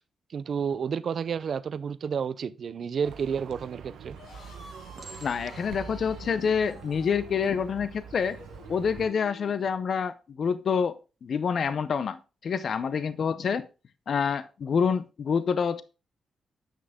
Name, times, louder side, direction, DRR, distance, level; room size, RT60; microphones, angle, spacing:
voice 1, 0.3-4.2, right 7 dB, 60° right, 0.5 m, -30 dB
Livestock farm animals working animals, 3.0-9.1, right 6 dB, 85° right, 1.0 m, -45 dB
sound 1, 4.1-9.7, left 3 dB, 90° left, 5.2 m, -50 dB
Chink clink, 5.0-5.8 6.5-6.8, right 4 dB, 45° right, 1.8 m, -49 dB
voice 2, 5.2-8.4 8.7-10.9 11.2-13.7 14.1-15.8, left 6 dB, 60° left, 0.6 m, -27 dB
8.3 x 6.2 x 3.6 m
cardioid pair, 80°, 0 cm